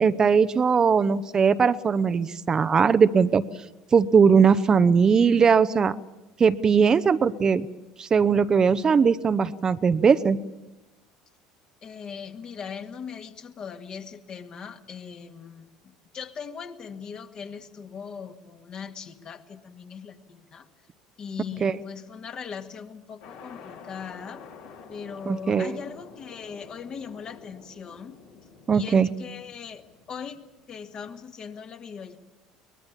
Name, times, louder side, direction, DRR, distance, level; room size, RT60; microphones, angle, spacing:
voice 1, 0.0-3.4 3.9-5.9 6.4-7.7 8.0-10.4 21.6-21.8 25.3-25.7 28.7-29.1, right 6 dB, 30° right, 13 dB, 0.8 m, -20 dB
voice 2, 11.8-20.7 21.2-24.4 24.9-28.2 28.7-30.4 30.7-32.2, left 6 dB, 40° left, 6 dB, 1.9 m, -39 dB
sound 1, 23.2-30.8, left 5 dB, 70° left, 4.2 m, -48 dB
23.0 x 21.0 x 7.3 m, 1.0 s
figure-of-eight pair, 65°, 2 cm